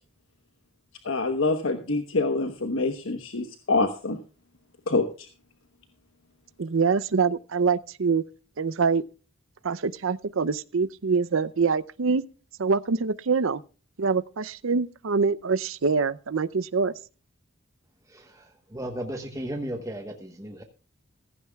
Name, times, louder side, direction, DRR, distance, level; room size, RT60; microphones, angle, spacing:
voice 1, 1.0-4.2 4.9-5.3, left 3 dB, 80° left, 1.1 m, -26 dB
voice 2, 6.6-8.2 8.6-9.0 9.6-12.2 12.6-13.6 14.0-16.9, right 5 dB, 75° right, 0.6 m, -25 dB
voice 3, 18.1-20.6, right 1 dB, 15° right, 1.1 m, -35 dB
15.5 x 15.0 x 2.3 m
head